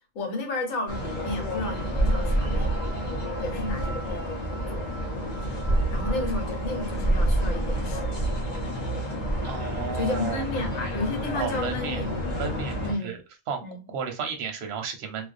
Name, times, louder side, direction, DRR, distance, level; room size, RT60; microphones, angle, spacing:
voice 1, 0.1-2.7 3.4-4.3 4.7-4.9 5.9-8.1 9.9-12.1 12.8-13.1 13.6-13.8, left 2 dB, 75° left, 1.2 m, -32 dB
sound 1, 0.9-12.9, right 1 dB, 40° left, 0.6 m, -28 dB
voice 2, 9.4-10.4 11.4-12.0 12.4-13.2 13.5-13.6 13.9-15.3, right 6 dB, 60° right, 0.7 m, -33 dB
2.5 x 2.0 x 2.4 m
omnidirectional pair, 1.4 m